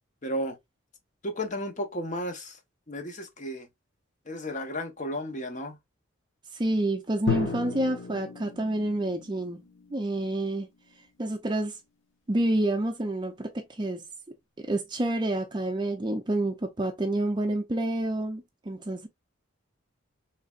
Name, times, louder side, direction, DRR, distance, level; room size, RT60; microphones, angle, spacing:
voice 1, 0.2-0.6 1.2-2.6 2.9-3.7 4.3-5.8, equal, 35° left, 0.8 m, -33 dB
voice 2, 6.5-9.6 9.9-10.7 11.2-11.8 12.3-14.0 14.6-19.1, right 1 dB, 20° right, 0.4 m, -28 dB
Drum, 7.3-11.0, left 5 dB, 60° left, 1.1 m, -35 dB
4.0 x 3.2 x 2.3 m
head